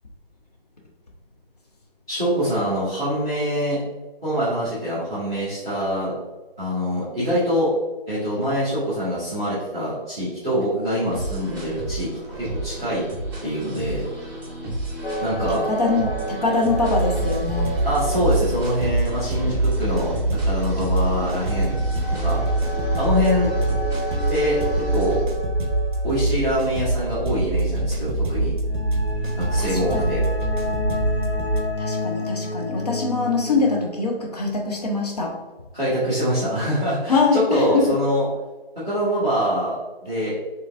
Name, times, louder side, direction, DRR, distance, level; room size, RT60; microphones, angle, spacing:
voice 1, 2.1-3.8 4.2-6.1 6.6-7.7 8.1-13.0 13.4-14.0 15.2-15.6 17.8-20.1 20.4-21.8 22.2-22.4 23.0-23.5 24.3-24.6 24.9-25.2 26.0-28.5 29.4-30.2 35.7-38.2 38.8-40.4, equal, 5° left, -18 dB, 0.6 m, -24 dB
sound 1, 11.1-25.2, right 2 dB, 20° right, 0.9 m, -32 dB
sound 2, 15.0-19.2 19.5-19.6 21.3-27.0 28.0-33.9, left 1 dB, 90° left, 0.9 m, -31 dB
voice 2, 15.5-17.7 29.6-30.1 31.8-35.4 37.1-37.9, left 3 dB, 40° left, 0 dB, 0.8 m, -23 dB
sound 3, 16.8-31.6, right 2 dB, 55° right, 0.7 m, -25 dB
5.0 x 3.1 x 2.4 m, 1.1 s
figure-of-eight pair, 160°, 30 cm